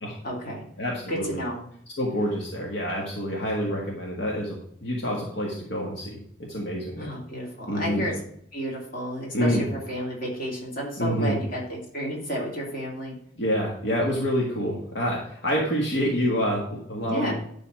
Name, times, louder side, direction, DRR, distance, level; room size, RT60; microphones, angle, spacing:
voice 1, 0.2-0.6 1.1-1.6 7.0-8.1 8.5-13.1 17.0-17.3, equal, 50° left, -2 dB, 3.1 m, -31 dB
voice 2, 0.8-1.4 2.0-6.2 6.5-7.1 7.7-8.1 9.3-9.6 11.0-11.4 13.4-17.3, equal, 70° left, -3 dB, 1.9 m, -27 dB
11.0 x 4.1 x 6.2 m, 0.68 s
head